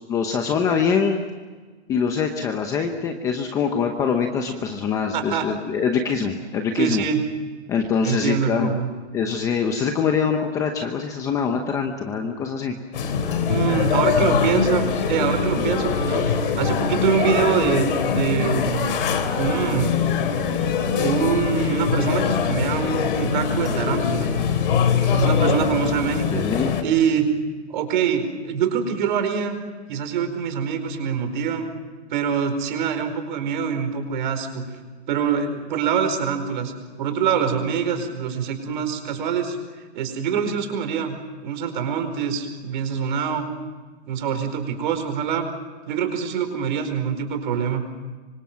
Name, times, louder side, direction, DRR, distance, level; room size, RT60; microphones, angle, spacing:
voice 1, 0.1-1.2 1.9-7.0 7.7-8.7 9.1-12.7 26.0-26.8, left 6 dB, 10° left, 5 dB, 0.8 m, -24 dB
voice 2, 5.1-5.5 6.1-6.3 6.7-7.2 8.0-8.9 13.5-19.0 19.3-19.9 21.0-24.3 25.1-26.4 26.8-27.3 27.7-29.6 29.9-31.7 32.1-34.6 35.1-36.7 37.0-39.6 39.9-41.2 41.4-43.5 44.1-45.4 45.9-47.8, right 7 dB, 45° right, 7 dB, 4.8 m, -24 dB
sound 1, 12.9-26.8, left 6 dB, 50° left, 3.5 m, -23 dB
26.0 x 25.0 x 7.5 m, 1.4 s
hypercardioid pair, 165°, 35 cm